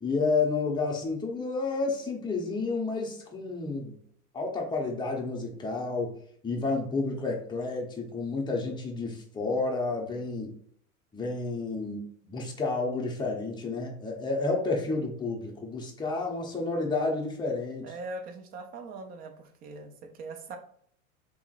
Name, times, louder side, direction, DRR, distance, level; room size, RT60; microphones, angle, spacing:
voice 1, 0.0-4.0 4.3-6.1 6.4-10.5 11.1-17.8, left 3 dB, 10° left, -1 dB, 0.8 m, -30 dB
voice 2, 17.8-20.6, right 3 dB, 25° right, 6 dB, 0.3 m, -41 dB
3.6 x 2.9 x 2.4 m, 0.62 s
hypercardioid pair, 95°, 44 cm